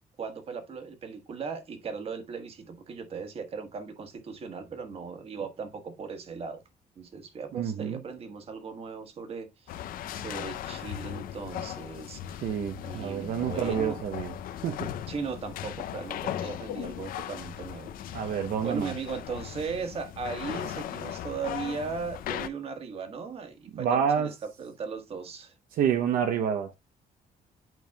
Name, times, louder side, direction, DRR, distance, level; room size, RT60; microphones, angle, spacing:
voice 1, 0.2-6.6 6.9-9.8 10.1-12.5 12.8-14.0 15.1-25.5, right 5 dB, 45° right, 1.4 m, -38 dB
voice 2, 7.5-8.0 12.4-14.3 14.6-14.9 18.1-18.9 23.7-24.3 25.7-26.7, right 8 dB, 70° right, 0.7 m, -28 dB
sound 1, 9.7-22.5, left 11 dB, 75° left, 0.5 m, -38 dB
9.1 x 5.2 x 2.2 m
cardioid pair, 165°, 15 cm